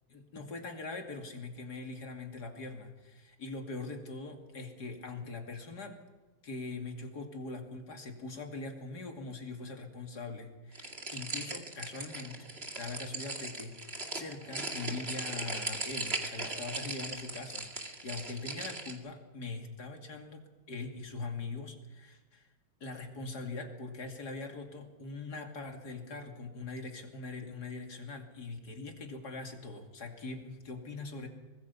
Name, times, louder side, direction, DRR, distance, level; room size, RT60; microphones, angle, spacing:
voice 1, 0.1-6.0 6.4-12.5 12.8-22.5 22.8-31.3, left 3 dB, 50° left, 3 dB, 3.1 m, -42 dB
sound 1, 10.7-18.9, right 2 dB, 30° right, 2.5 m, -39 dB
24.5 x 20.0 x 5.5 m, 1.2 s
omnidirectional pair, 2.2 m